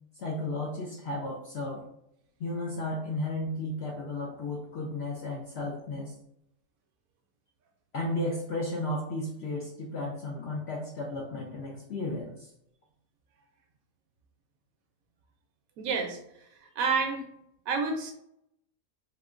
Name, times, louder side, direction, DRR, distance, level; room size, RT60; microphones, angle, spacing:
voice 1, 0.2-1.9 2.4-6.1 7.9-12.5, left 2 dB, 65° left, -2 dB, 0.6 m, -34 dB
voice 2, 15.8-17.3 17.7-18.1, right 4 dB, 75° right, 4 dB, 1.0 m, -30 dB
3.5 x 2.2 x 2.4 m, 0.76 s
omnidirectional pair, 1.5 m